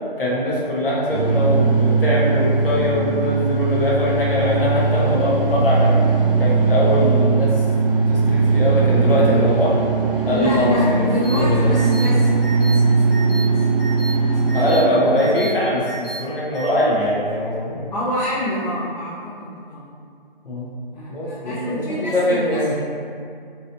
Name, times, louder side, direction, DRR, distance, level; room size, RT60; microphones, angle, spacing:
voice 1, 0.2-6.1 6.4-7.6 7.9-9.7 10.2-11.0 11.3-11.7 14.5-17.8 20.4-20.7 21.1-22.7, left 1 dB, 70° left, -6 dB, 1.1 m, -22 dB
sound 1, 1.1-15.2, right 4 dB, 70° right, 0.7 m, -19 dB
voice 2, 10.3-13.8 14.1-14.6 17.9-19.9 20.9-22.7, equal, 45° left, -12 dB, 0.9 m, -27 dB
sound 2, 11.2-11.4 11.7-12.0 12.4-12.7 13.1-13.4 13.8-14.1 14.5-14.8 15.2-15.5 15.8-16.2 16.5-16.7, right 3 dB, 10° right, 0.5 m, -33 dB
3.0 x 2.8 x 2.6 m, 2.3 s
figure-of-eight pair, 165°, 29 cm